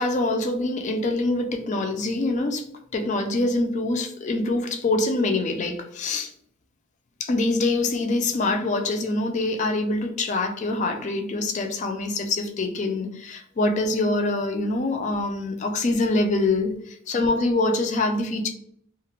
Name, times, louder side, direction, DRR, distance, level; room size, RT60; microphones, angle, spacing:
voice 1, 0.0-2.7 2.9-6.3 7.2-18.5, left 2 dB, 35° left, 5 dB, 0.3 m, -25 dB
2.3 x 2.0 x 2.9 m, 0.67 s
head